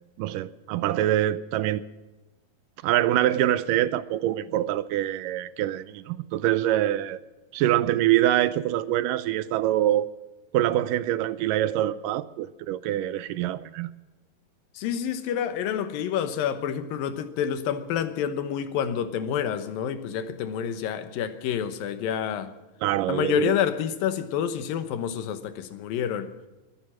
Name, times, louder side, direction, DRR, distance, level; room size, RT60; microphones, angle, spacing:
voice 1, 0.2-1.8 2.8-7.2 7.5-10.1 10.5-13.9 22.8-23.5, right 13 dB, 80° right, 2.2 m, -25 dB
voice 2, 14.7-22.5 23.1-26.3, left 8 dB, 85° left, 2.9 m, -28 dB
21.5 x 10.5 x 6.2 m
omnidirectional pair, 4.0 m